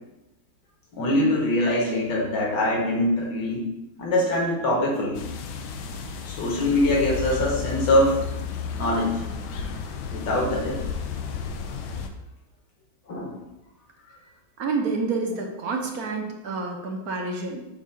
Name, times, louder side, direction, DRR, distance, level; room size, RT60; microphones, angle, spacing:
voice 1, 0.9-3.7 4.0-5.2 6.2-8.2 8.8-9.1 10.1-10.8 13.1-13.3, left 1 dB, 65° left, -3 dB, 2.1 m, -23 dB
sound 1, 5.1-12.1, left 6 dB, 80° left, 1.3 m, -33 dB
voice 2, 14.6-17.7, right 4 dB, 60° right, 2 dB, 1.1 m, -28 dB
7.4 x 2.7 x 5.6 m, 0.95 s
omnidirectional pair, 2.2 m